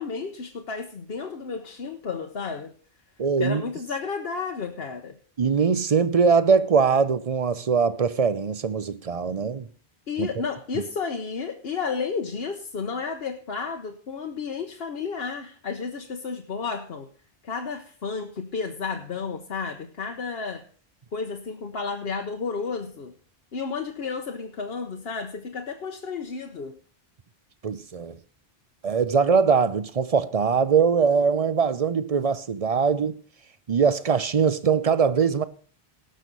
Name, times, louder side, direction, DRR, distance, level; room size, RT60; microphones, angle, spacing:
voice 1, 0.0-2.7 3.4-5.2 10.1-17.1 17.4-20.6 21.1-23.1 23.5-26.8, left 5 dB, 70° left, 1.2 m, -32 dB
voice 2, 3.2-3.6 5.4-9.7 10.2-10.3 27.6-28.2 28.8-33.2 33.7-35.4, right 6 dB, 40° right, 0.7 m, -22 dB
18.0 x 6.4 x 5.3 m
omnidirectional pair, 1.1 m